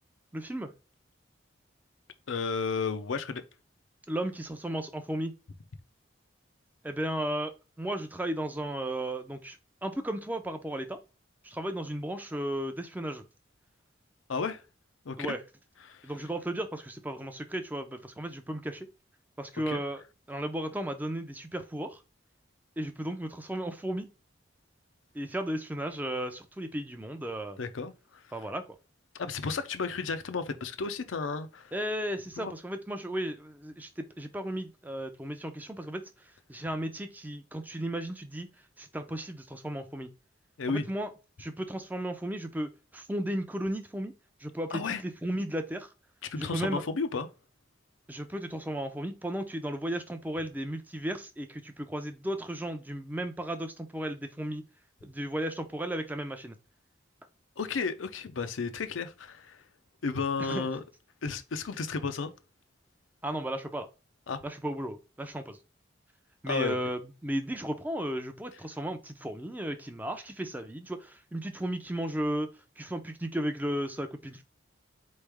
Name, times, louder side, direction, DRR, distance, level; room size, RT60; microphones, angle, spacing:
voice 1, 0.3-0.7 4.1-5.3 6.8-9.6 9.8-11.0 11.4-13.2 15.1-15.4 16.0-18.9 19.4-20.0 20.3-22.0 22.8-24.1 25.1-27.6 28.3-28.6 31.7-36.1 36.5-38.5 38.8-40.1 40.7-41.1 41.4-44.1 44.4-45.9 46.4-46.8 48.1-54.6 55.0-56.6 60.4-60.7 63.2-63.9 64.4-65.6 66.4-72.5 72.8-74.4, right 1 dB, 10° right, 0.4 m, -34 dB
voice 2, 2.3-3.4 14.3-14.6 15.1-15.3 15.9-16.1 19.7-19.8 27.6-28.2 29.2-31.7 32.4-32.5 40.6-40.8 44.7-45.0 46.3-47.3 57.6-59.6 60.0-60.8 61.2-62.3 64.3-64.4 66.5-66.8, left 4 dB, 90° left, 0.6 m, -33 dB
4.4 x 3.2 x 3.4 m
head